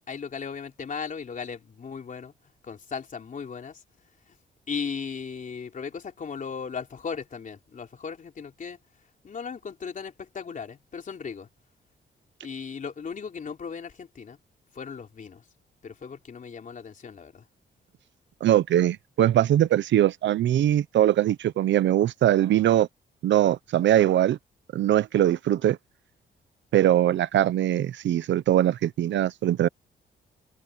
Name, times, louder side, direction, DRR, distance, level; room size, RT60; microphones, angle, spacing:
voice 1, 0.1-2.3 2.6-3.8 4.7-8.8 9.2-11.5 12.4-14.4 14.7-15.4 15.8-17.5, left 6 dB, 45° left, 3.6 m, -37 dB
voice 2, 18.4-22.9 23.2-24.4 24.7-25.8 26.7-29.7, right 12 dB, 75° right, 0.8 m, -21 dB
cardioid pair, 110°, 19 cm